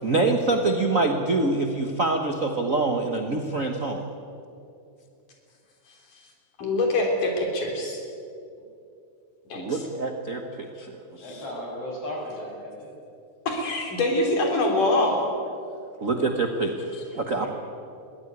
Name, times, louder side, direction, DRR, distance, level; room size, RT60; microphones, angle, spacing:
voice 1, 0.0-4.0 9.5-11.4 16.0-17.5, right 3 dB, 65° right, 4 dB, 0.7 m, -25 dB
voice 2, 6.6-8.0 9.5-9.8 13.5-15.2, left 2 dB, 85° left, 1 dB, 4.9 m, -24 dB
voice 3, 11.2-12.9 17.4-17.5, left 1 dB, 45° left, -3 dB, 8.1 m, -35 dB
22.0 x 16.0 x 9.7 m, 2.6 s
omnidirectional pair, 3.6 m